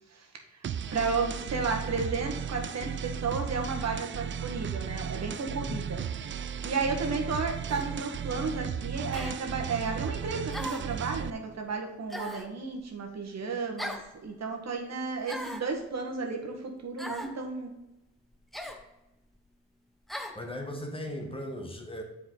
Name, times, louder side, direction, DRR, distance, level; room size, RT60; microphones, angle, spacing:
sound 1, 0.6-11.3, right 7 dB, 40° right, 0.4 m, -35 dB
voice 1, 0.9-6.0 6.6-13.9 14.2-17.7, right 4 dB, 65° right, 3 dB, 1.5 m, -33 dB
voice 2, 5.5-5.9 20.3-22.0, left 1 dB, 20° left, 3 dB, 1.5 m, -38 dB
sound 2, 7.7-7.9 9.1-9.4 10.5-10.9 12.1-12.5 13.8-14.1 15.2-15.7 17.0-17.3 18.5-18.8 20.1-20.4, equal, ahead, 1.0 m, -38 dB
11.0 x 4.8 x 3.8 m, 0.96 s
cardioid pair, 100°, 29 cm